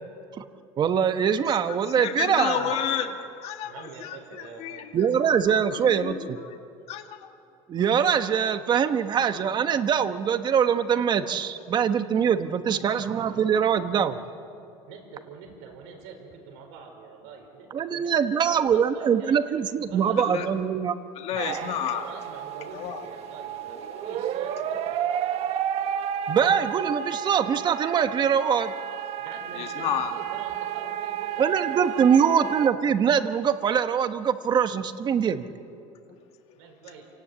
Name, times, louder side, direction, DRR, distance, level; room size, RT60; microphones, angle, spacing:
voice 1, 0.8-2.7 4.9-6.4 7.7-14.2 17.7-20.9 26.3-28.7 31.4-35.5, right 7 dB, 35° right, 9 dB, 1.2 m, -23 dB
voice 2, 2.0-3.1 3.4-4.9 5.7-6.5 6.9-7.2 20.2-20.5 21.1-22.0 22.7-23.0 26.9-27.0 29.6-30.1, left 9 dB, 50° left, 5 dB, 1.8 m, -31 dB
voice 3, 3.6-4.8 14.0-14.2 14.9-19.4 19.6-20.4 21.9-25.4 29.2-32.2 36.5-37.1, right 5 dB, 90° right, 2 dB, 4.9 m, -45 dB
sound 1, 21.4-32.7, right 10 dB, 50° right, 1.3 m, -32 dB
28.0 x 18.0 x 8.6 m, 2.6 s
cardioid pair, 135°, 13 cm